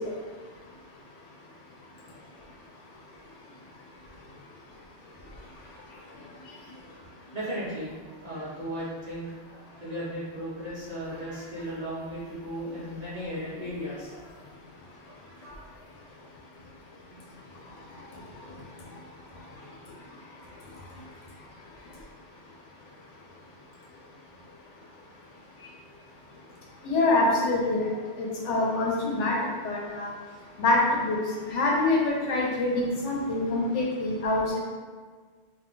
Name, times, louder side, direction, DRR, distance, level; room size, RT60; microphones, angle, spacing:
voice 1, 7.3-14.5 15.1-15.8, equal, 40° right, -8 dB, 0.8 m, -36 dB
voice 2, 26.8-27.9 28.2-29.4 29.6-30.1 30.6-31.2 31.5-34.6, left 2 dB, 85° left, -2 dB, 1.0 m, -25 dB
2.7 x 2.2 x 3.7 m, 1.5 s
omnidirectional pair, 1.2 m